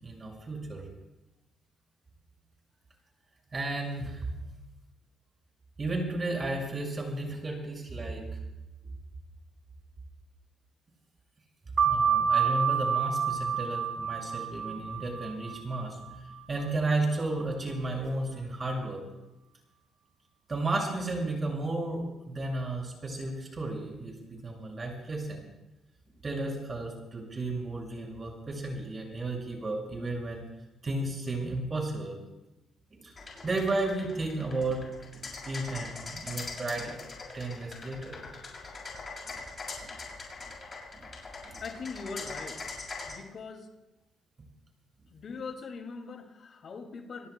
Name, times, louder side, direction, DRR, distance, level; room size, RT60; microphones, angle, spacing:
voice 1, 0.0-0.8 3.5-4.3 5.8-8.4 11.8-16.2 16.5-19.0 20.5-25.5 26.2-30.4 30.8-32.2 32.9-33.1 33.4-34.8 35.1-37.0 37.3-38.2 39.2-39.4 39.8-40.0 40.9-41.1 41.4-41.6, right 2 dB, 35° right, 0 dB, 6.2 m, -33 dB
sound 1, 11.8-17.0, right 7 dB, 50° right, 1.5 m, -29 dB
sound 2, 33.2-43.1, left 3 dB, 40° left, 6.3 m, -41 dB
voice 2, 41.6-42.6 43.1-43.7 45.1-47.3, left 4 dB, 55° left, 3 dB, 2.5 m, -41 dB
28.5 x 18.0 x 2.3 m, 0.98 s
cardioid pair, 90°, 0 cm